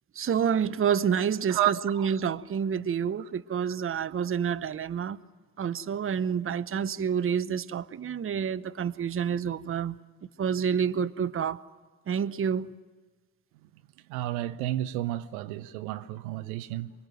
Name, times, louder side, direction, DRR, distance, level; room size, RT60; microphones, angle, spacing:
voice 1, 0.1-5.2 5.6-10.0 10.4-11.6 12.1-12.7, right 7 dB, 30° right, 0.8 m, -28 dB
voice 2, 1.5-2.2 3.7-3.8 14.1-16.9, right 13 dB, 85° right, 0.8 m, -31 dB
24.5 x 22.0 x 9.2 m
hypercardioid pair, 55°, 42 cm